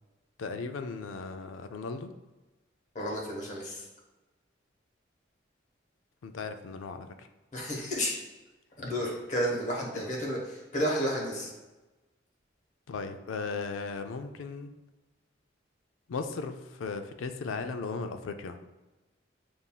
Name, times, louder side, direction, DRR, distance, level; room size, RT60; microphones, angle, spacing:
voice 1, 0.4-2.1 6.2-7.1 12.9-14.7 16.1-18.6, left 4 dB, 85° left, 8 dB, 0.4 m, -36 dB
voice 2, 2.9-3.8 7.5-8.2 8.8-11.5, equal, 40° left, -2 dB, 0.9 m, -31 dB
7.1 x 2.5 x 2.2 m, 1.1 s
head